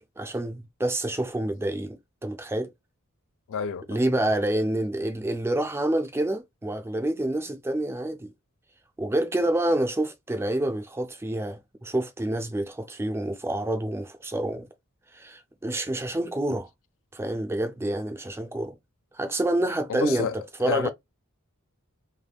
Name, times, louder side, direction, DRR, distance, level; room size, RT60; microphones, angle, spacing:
voice 1, 0.0-2.7 3.9-8.3 9.0-14.7 15.1-16.7 17.1-18.8 19.1-20.3 20.6-20.9, right 1 dB, 10° right, 0.4 m, -28 dB
voice 2, 3.5-4.0 19.9-20.9, left 6 dB, 60° left, 0.3 m, -30 dB
3.3 x 2.1 x 2.3 m
head